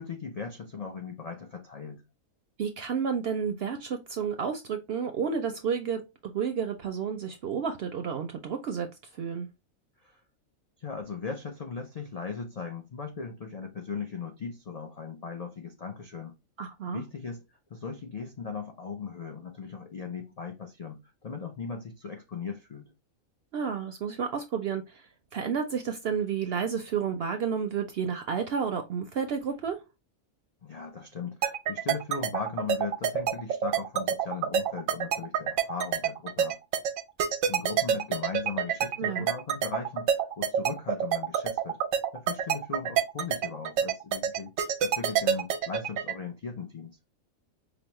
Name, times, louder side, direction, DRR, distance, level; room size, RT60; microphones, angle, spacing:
voice 1, 0.0-2.0 10.0-10.2 10.8-16.4 16.9-22.9 30.6-36.6 37.5-41.8 42.1-47.0, left 5 dB, 80° left, 0.3 m, -38 dB
voice 2, 2.6-9.5 16.6-17.0 23.5-29.8 39.0-39.3, right 6 dB, 65° right, 0.6 m, -31 dB
sound 1, 31.4-46.1, right 8 dB, 90° right, 1.0 m, -26 dB
4.9 x 2.0 x 3.0 m
omnidirectional pair, 1.4 m